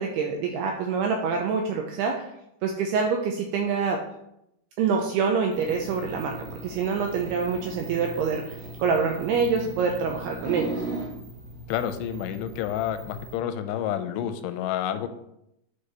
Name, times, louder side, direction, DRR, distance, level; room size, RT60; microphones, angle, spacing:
voice 1, 0.0-2.2 2.6-4.0 4.8-6.3 6.6-10.7, right 5 dB, 90° right, 2 dB, 2.3 m, -26 dB
sound 1, 5.5-13.3, right 2 dB, 60° right, 3.0 m, -38 dB
voice 2, 11.7-15.1, left 10 dB, 90° left, 8 dB, 3.0 m, -29 dB
9.5 x 5.3 x 3.4 m, 0.81 s
omnidirectional pair, 5.3 m